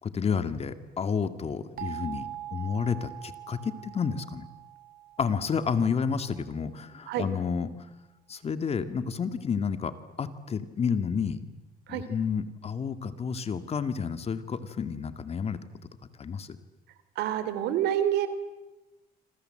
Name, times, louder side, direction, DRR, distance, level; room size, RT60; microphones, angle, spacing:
voice 1, 0.0-4.5 5.2-7.9 8.3-11.5 11.9-15.6 16.2-16.6, left 6 dB, 35° left, 11 dB, 2.1 m, -30 dB
sound 1, 1.8-6.5, right 13 dB, 60° right, 3.2 m, -43 dB
voice 2, 17.1-18.3, right 11 dB, 80° right, 12 dB, 3.2 m, -27 dB
27.0 x 27.0 x 7.8 m, 1.0 s
cardioid pair, 110°, 17 cm